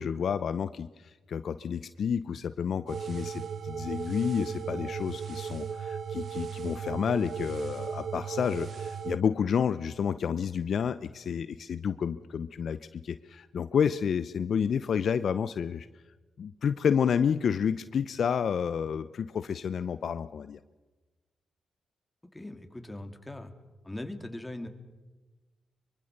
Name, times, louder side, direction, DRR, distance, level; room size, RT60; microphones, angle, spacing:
voice 1, 0.0-15.9 16.4-20.6, left 7 dB, 65° left, 13 dB, 0.7 m, -30 dB
sound 1, 2.9-9.2, right 7 dB, 60° right, 0.9 m, -36 dB
voice 2, 22.3-23.5 23.8-24.7, left 1 dB, 15° left, 6 dB, 3.4 m, -40 dB
24.0 x 24.0 x 6.7 m, 1.2 s
hypercardioid pair, 45°, 0 cm